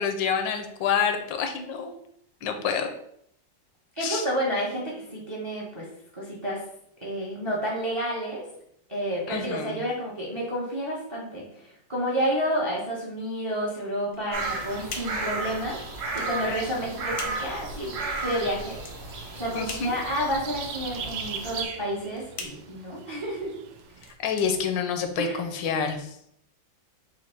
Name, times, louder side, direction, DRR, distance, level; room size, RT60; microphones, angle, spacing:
voice 1, 0.0-1.9 2.4-2.9 4.0-4.2 9.3-9.8 19.5-19.9 24.2-26.2, left 6 dB, 80° left, 6 dB, 1.3 m, -27 dB
voice 2, 3.9-6.6 7.0-8.4 8.9-15.8 16.1-18.8 19.3-23.5 25.2-25.4, equal, 30° right, -3 dB, 0.5 m, -30 dB
sound 1, 14.0-25.4, left 3 dB, 60° left, 0.8 m, -44 dB
sound 2, 14.3-21.6, right 3 dB, 60° right, 1.4 m, -34 dB
sound 3, 18.3-24.2, right 7 dB, 80° right, 1.3 m, -40 dB
4.2 x 2.5 x 4.3 m, 0.71 s
omnidirectional pair, 2.0 m